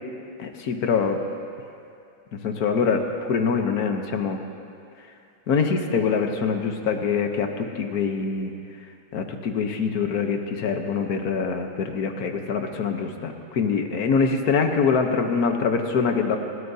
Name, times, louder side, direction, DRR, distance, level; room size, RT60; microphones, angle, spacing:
voice 1, 0.4-1.2 2.3-4.4 5.5-8.5 9.1-16.4, left 5 dB, 55° left, 5 dB, 1.2 m, -24 dB
28.5 x 12.5 x 2.8 m, 2.5 s
omnidirectional pair, 2.3 m